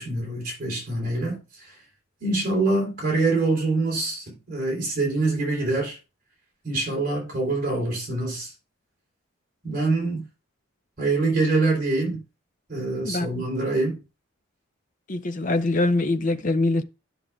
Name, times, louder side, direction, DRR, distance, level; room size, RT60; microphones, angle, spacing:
voice 1, 0.0-1.7 2.2-6.0 6.6-8.5 9.6-10.2 11.0-12.2 12.7-14.0, right 2 dB, 40° right, 3.4 m, -25 dB
voice 2, 15.1-16.8, left 2 dB, 35° left, 0.5 m, -23 dB
11.0 x 6.3 x 2.4 m
head